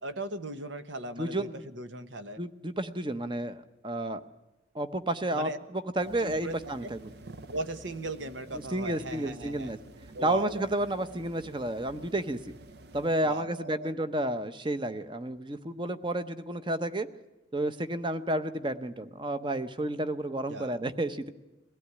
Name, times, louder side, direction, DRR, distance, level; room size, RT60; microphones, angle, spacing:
voice 1, 0.0-2.4 5.3-5.6 6.2-6.6 6.8-6.9 7.5-9.7 10.1-10.6 13.2-13.9 20.5-20.8, right 1 dB, 75° right, 10 dB, 1.3 m, -38 dB
voice 2, 1.2-1.6 2.4-4.2 4.7-7.0 8.7-9.8 10.2-12.4 12.9-17.1 17.5-21.3, right 1 dB, 25° right, 11 dB, 0.9 m, -31 dB
sound 1, 6.0-13.2, right 2 dB, 55° right, 0.7 m, -50 dB
21.5 x 16.5 x 9.6 m, 1.0 s
head